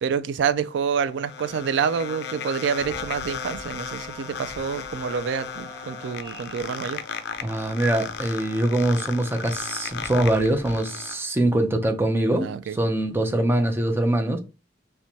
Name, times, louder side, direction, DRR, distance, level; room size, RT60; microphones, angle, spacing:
voice 1, 0.0-7.0 12.4-12.8, right 6 dB, 70° right, 0.3 m, -27 dB
sound 1, 0.7-11.1, left 7 dB, 65° left, 0.4 m, -35 dB
sound 2, 2.8-10.8, equal, 35° left, 1.7 m, -46 dB
voice 2, 7.4-14.4, right 1 dB, 10° right, 0.5 m, -23 dB
4.3 x 2.2 x 2.7 m
head